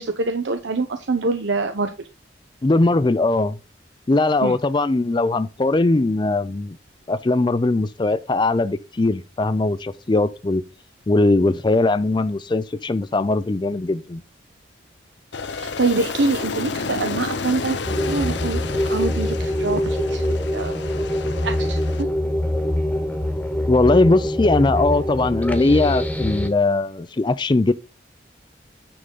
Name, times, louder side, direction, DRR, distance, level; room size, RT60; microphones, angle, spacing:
voice 1, 0.0-1.9 4.4-4.5 15.5-17.8 18.1-20.7 21.4-22.1, right 3 dB, 70° right, 0.8 m, -25 dB
voice 2, 2.6-3.6 4.1-6.8 7.1-10.6 11.1-14.2 23.7-27.7, left 2 dB, 25° left, 0.4 m, -20 dB
Aircraft, 15.3-22.0, left 4 dB, 65° left, 0.7 m, -31 dB
sound 1, 17.8-26.5, left 1 dB, 10° left, 1.2 m, -24 dB
9.7 x 3.8 x 5.3 m
head